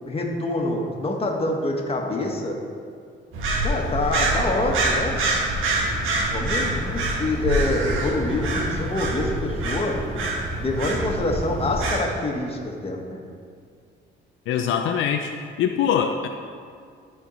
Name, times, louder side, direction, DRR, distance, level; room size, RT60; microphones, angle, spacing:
voice 1, 0.1-2.6 3.6-5.2 6.0-10.0 10.6-13.2, left 2 dB, 30° left, 0 dB, 1.5 m, -26 dB
sound 1, 3.3-12.0, right 2 dB, 85° right, 1.3 m, -25 dB
voice 2, 14.5-15.3 15.6-16.3, left 8 dB, 80° left, 5 dB, 0.5 m, -23 dB
13.0 x 4.6 x 4.2 m, 2.2 s
cardioid pair, 90°, 20 cm